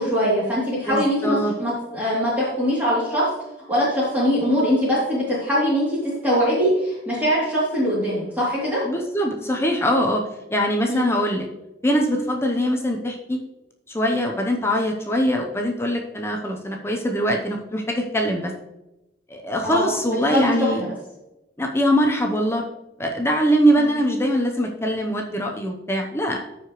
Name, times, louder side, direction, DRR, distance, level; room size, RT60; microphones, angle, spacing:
voice 1, 0.0-3.3 3.7-8.8 10.9-11.1 19.6-19.9 20.3-20.9 23.8-24.0, equal, 10° right, -8 dB, 2.7 m, -22 dB
voice 2, 0.8-1.5 8.9-10.2 10.5-11.5 11.8-13.4 13.9-18.5 19.3-20.8 21.6-22.7 23.0-26.4, equal, 15° left, 2 dB, 0.7 m, -22 dB
14.0 x 4.8 x 3.0 m, 0.95 s
head